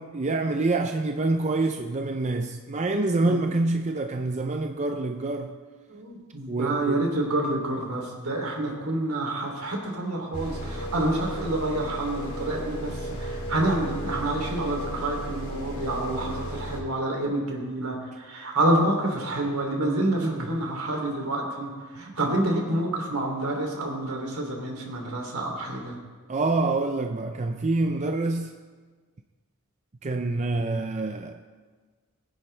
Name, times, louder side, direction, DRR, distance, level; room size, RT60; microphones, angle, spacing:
voice 1, 0.0-5.6 6.5-7.1 20.2-20.6 22.0-22.1 26.3-28.5 30.0-31.4, right 2 dB, 30° right, 6 dB, 0.5 m, -26 dB
voice 2, 5.9-26.0, right 1 dB, 70° right, 0 dB, 2.9 m, -28 dB
sound 1, 10.3-16.8, equal, 65° left, 4.3 m, -34 dB
22.0 x 10.0 x 3.3 m, 1.5 s
head